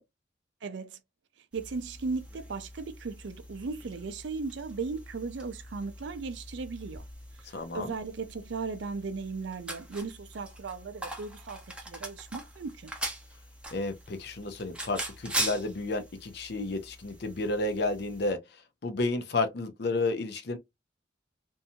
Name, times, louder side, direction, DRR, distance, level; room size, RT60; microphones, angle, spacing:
voice 1, 0.6-1.0 1.5-7.1 7.5-12.9, right 4 dB, 75° right, 0.5 m, -37 dB
sound 1, 1.5-18.3, right 1 dB, 5° right, 0.7 m, -41 dB
voice 2, 7.5-7.9 13.7-18.4 18.8-20.6, left 2 dB, 60° left, 0.6 m, -31 dB
2.6 x 2.2 x 2.7 m
head